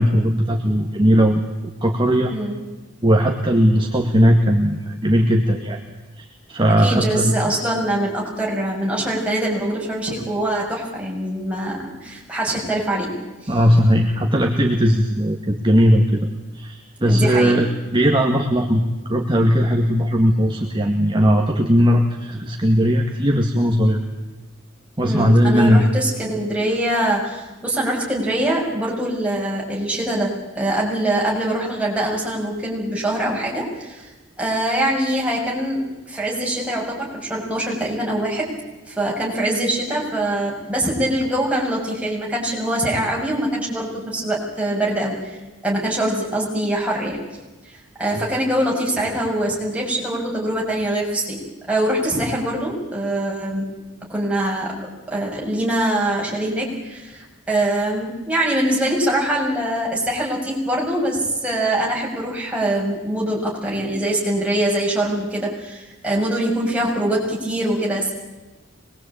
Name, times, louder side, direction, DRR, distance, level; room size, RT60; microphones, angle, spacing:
voice 1, 0.0-2.3 3.0-5.9 6.2-7.3 13.5-16.3 16.5-17.7 17.9-24.0 25.0-25.9, equal, 25° right, 1 dB, 2.0 m, -18 dB
voice 2, 2.3-2.6 6.8-13.1 13.4-13.5 17.0-17.6 25.0-34.1 34.4-38.5 38.9-45.2 45.6-47.2 48.0-51.4 51.7-53.7 54.1-54.7 55.1-68.1, right 1 dB, 5° right, -4 dB, 7.1 m, -23 dB
24.5 x 21.0 x 8.8 m, 1.1 s
head